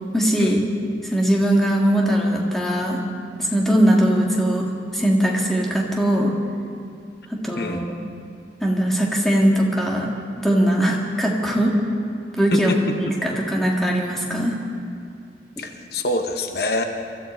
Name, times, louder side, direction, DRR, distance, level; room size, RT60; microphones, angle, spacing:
voice 1, 0.1-0.6 1.0-3.0 3.4-4.7 4.9-6.3 7.3-7.9 8.6-10.1 10.4-11.7 12.4-14.5, right 1 dB, ahead, -2 dB, 1.9 m, -20 dB
voice 2, 12.5-13.2 15.6-16.8, left 1 dB, 65° left, 5 dB, 1.0 m, -25 dB
24.0 x 13.5 x 4.4 m, 2.3 s
head